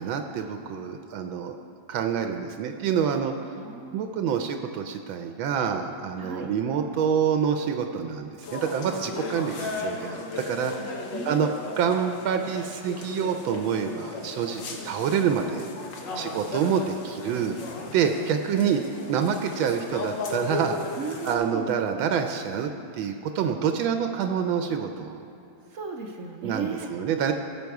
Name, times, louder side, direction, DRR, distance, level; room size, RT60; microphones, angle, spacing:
voice 1, 0.0-1.5 1.9-3.3 3.9-10.7 11.2-11.5 11.8-15.6 16.1-17.6 17.9-18.8 19.1-20.8 21.1-22.7 22.9-25.2 26.4-27.3, right 7 dB, 80° right, 6 dB, 1.4 m, -27 dB
voice 2, 3.6-4.0 6.2-6.5 11.1-11.6 16.1-16.8 18.1-18.3 18.5-18.9 21.0-21.8 25.7-26.9, right 4 dB, 65° right, 3 dB, 0.7 m, -37 dB
sound 1, 8.4-21.3, left 3 dB, 65° left, 1.7 m, -36 dB
16.5 x 6.5 x 4.7 m, 2.7 s
omnidirectional pair, 2.1 m